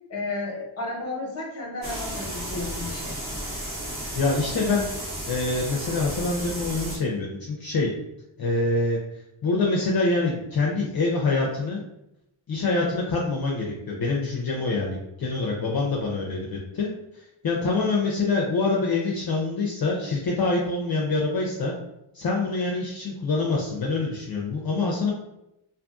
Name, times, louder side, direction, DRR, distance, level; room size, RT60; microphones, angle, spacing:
voice 1, 0.1-3.1, left 2 dB, 30° left, -3 dB, 1.0 m, -32 dB
sound 1, 1.8-7.0, right 1 dB, 50° right, 1.1 m, -33 dB
voice 2, 4.1-4.8 5.3-7.9 8.4-9.0 9.4-11.8 12.5-16.9 17.1-21.7 22.1-25.1, left 3 dB, 50° left, -3 dB, 0.5 m, -25 dB
2.6 x 2.5 x 2.4 m, 0.84 s
cardioid pair, 80°, 48 cm